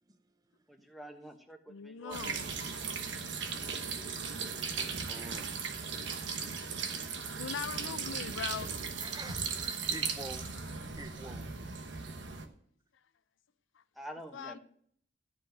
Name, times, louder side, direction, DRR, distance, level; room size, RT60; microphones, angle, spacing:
voice 1, 0.7-2.3 14.0-14.6, equal, ahead, 1.2 m, -47 dB
voice 2, 1.7-2.6 7.4-9.0 11.2-11.3 13.7-13.8 14.3-14.6, left 7 dB, 85° left, 0.5 m, -41 dB
sound 1, 2.1-12.4, right 5 dB, 70° right, 1.2 m, -37 dB
voice 3, 4.1-7.3 9.0-10.5 11.0-11.4, right 2 dB, 20° right, 0.5 m, -49 dB
13.5 x 5.2 x 7.7 m
head